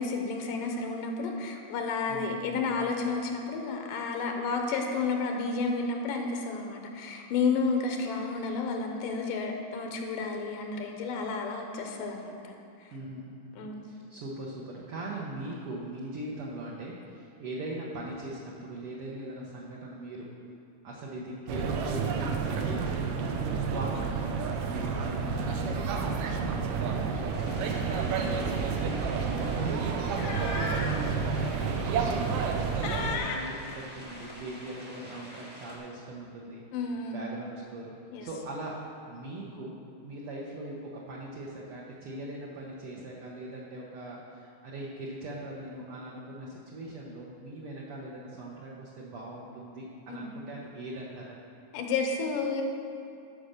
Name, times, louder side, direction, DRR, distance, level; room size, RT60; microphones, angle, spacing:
voice 1, 0.0-12.6 13.6-13.9 36.7-37.2 38.1-38.3 50.1-50.3 51.7-52.6, left 4 dB, 90° left, 3 dB, 2.6 m, -31 dB
voice 2, 2.1-2.9 12.9-13.5 13.8-20.3 20.8-24.0 24.4-32.6 32.8-36.6 37.1-38.8 39.1-39.8 40.0-51.4, right 1 dB, 65° right, -4 dB, 1.5 m, -41 dB
sound 1, 21.5-33.2, right 5 dB, 90° right, 2.4 m, -30 dB
sound 2, 27.3-35.8, equal, 10° right, 0.5 m, -46 dB
sound 3, 29.7-31.1 31.6-31.7 32.2-32.6 32.8-34.4, left 4 dB, 70° left, 1.7 m, -36 dB
11.5 x 5.1 x 6.6 m, 2.6 s
omnidirectional pair, 3.7 m